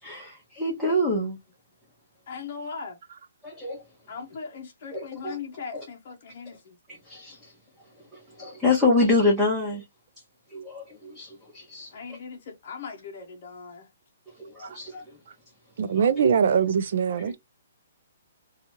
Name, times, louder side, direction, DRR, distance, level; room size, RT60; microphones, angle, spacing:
voice 1, 0.0-1.4 3.4-3.8 4.9-5.4 5.7-5.8 6.9-7.5 8.1-9.8 10.5-11.9 14.4-15.2 15.9-16.3 17.1-17.2, left 2 dB, ahead, 0.8 m, -27 dB
voice 2, 2.3-3.0 4.1-6.8 11.9-13.9, left 5 dB, 45° left, 0.6 m, -39 dB
voice 3, 15.8-17.4, right 7 dB, 55° right, 0.5 m, -22 dB
2.9 x 2.3 x 2.8 m
hypercardioid pair, 165°, 0 cm